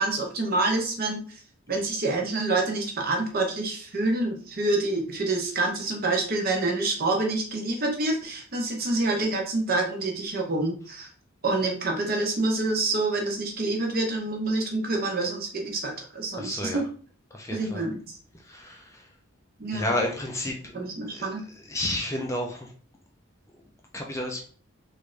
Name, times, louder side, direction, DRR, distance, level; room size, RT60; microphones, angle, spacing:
voice 1, 0.0-1.4 1.7-11.1 11.4-16.8 17.5-18.2 19.6-19.9 20.7-21.4, right 2 dB, 45° right, 1 dB, 0.8 m, -27 dB
voice 2, 16.4-16.8 17.3-17.8 18.3-19.1 19.7-20.7 21.1-21.3 21.7-22.7 23.9-24.4, left 1 dB, 15° left, 1 dB, 0.4 m, -31 dB
3.3 x 2.5 x 3.2 m, 0.43 s
head